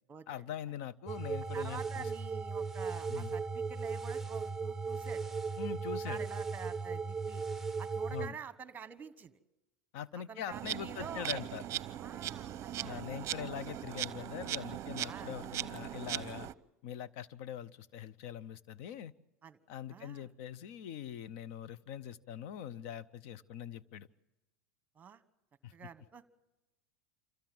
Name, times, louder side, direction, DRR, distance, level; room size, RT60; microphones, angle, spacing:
voice 1, 0.3-2.1 3.1-3.3 5.6-6.2 8.1-8.4 9.9-11.8 12.8-16.5 16.8-19.1 19.7-24.1 25.6-25.7, left 9 dB, 65° left, 19 dB, 0.7 m, -43 dB
sound 1, 1.1-8.3, right 5 dB, 5° right, 0.9 m, -37 dB
voice 2, 1.5-5.2 6.0-7.4 7.8-9.4 10.1-11.3 11.9-13.3 15.1-15.3 19.4-19.6 19.9-20.3 25.0-25.2 25.7-26.2, right 6 dB, 20° right, 15 dB, 1.2 m, -48 dB
Insect, 10.5-16.5, right 12 dB, 35° right, 0.7 m, -39 dB
26.0 x 15.0 x 7.7 m, 1.0 s
supercardioid pair, 120°, 8 cm